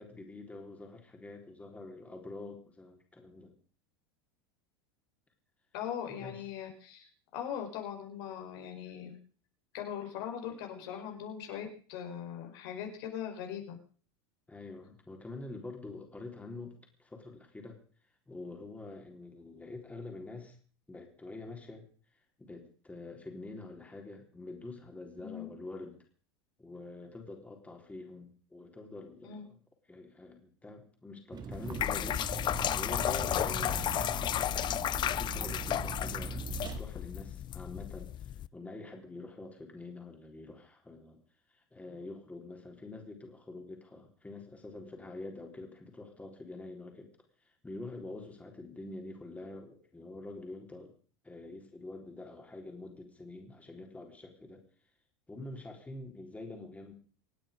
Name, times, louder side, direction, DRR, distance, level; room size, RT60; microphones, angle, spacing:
voice 1, 0.0-3.6 6.1-6.4 14.5-17.8 18.3-20.6 20.9-21.9 22.4-26.0 26.6-29.6 29.9-32.2 32.7-41.2 41.5-47.1 47.4-50.9 51.2-54.6 55.3-56.9, left 2 dB, 10° left, 2 dB, 4.0 m, -46 dB
voice 2, 5.7-9.2 9.7-13.8 25.2-25.5 29.2-29.4, left 9 dB, 65° left, 3 dB, 4.9 m, -40 dB
Vehicle, 31.3-36.8, right 6 dB, 30° right, 2.2 m, -41 dB
sound 1, 31.5-38.5, left 12 dB, 35° left, 0.6 m, -33 dB
25.5 x 8.9 x 5.2 m, 0.42 s
hypercardioid pair, 105°, 13 cm